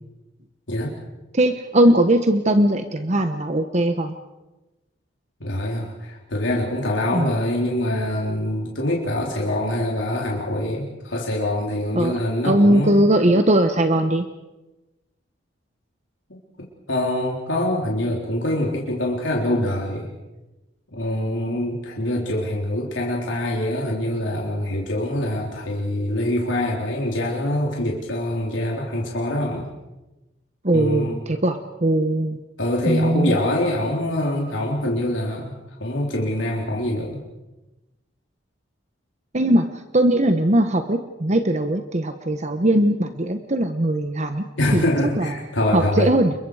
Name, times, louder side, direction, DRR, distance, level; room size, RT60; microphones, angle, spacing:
voice 1, 1.3-4.1 7.1-7.3 11.9-12.2 12.4-14.3 30.6-32.4 32.9-33.4 39.3-39.6 39.9-44.4 44.7-44.8 45.2-45.3 45.7-46.3, right 1 dB, 40° right, 8 dB, 1.1 m, -19 dB
voice 2, 5.4-13.0 16.6-20.1 20.9-29.7 30.7-31.2 32.6-35.5 35.8-37.2 44.6-46.1, left 1 dB, 85° left, -2 dB, 3.8 m, -24 dB
29.0 x 23.0 x 4.9 m, 1.0 s
head